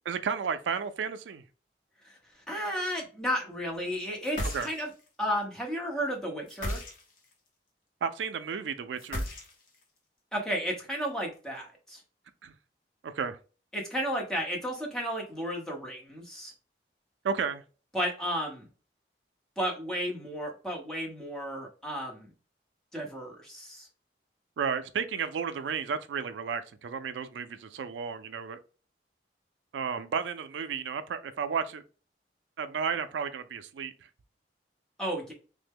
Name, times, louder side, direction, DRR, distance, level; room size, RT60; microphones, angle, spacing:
voice 1, 0.1-1.4 4.5-4.7 8.0-9.3 12.4-12.5 13.0-13.4 17.2-17.6 24.6-28.6 29.7-31.8 32.6-33.9, right 6 dB, 90° right, 0.4 m, -33 dB
voice 2, 2.5-4.9 5.2-6.8 10.3-12.0 13.7-16.5 17.9-18.7 19.6-22.3 22.9-23.9 35.0-35.3, equal, 5° left, 0.9 m, -33 dB
sound 1, 4.2-5.1 6.5-7.3 9.0-9.8, left 1 dB, 50° left, 0.9 m, -35 dB
3.2 x 2.1 x 3.4 m
head